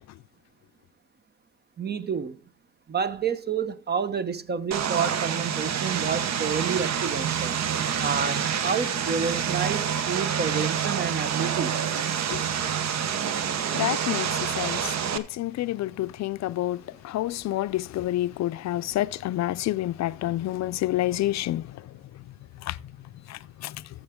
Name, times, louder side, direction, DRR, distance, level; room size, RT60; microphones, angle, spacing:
voice 1, 1.8-2.4 2.9-7.6 8.0-11.8, right 6 dB, 35° right, 0.9 m, -29 dB
Vehicle, 4.7-15.2, right 8 dB, 60° right, 1.0 m, -27 dB
voice 2, 13.7-14.8 15.1-21.6 22.6-22.8 23.3-23.7, left 15 dB, 65° left, 0.4 m, -28 dB
13.5 x 7.0 x 3.6 m
cardioid pair, 90°, 30 cm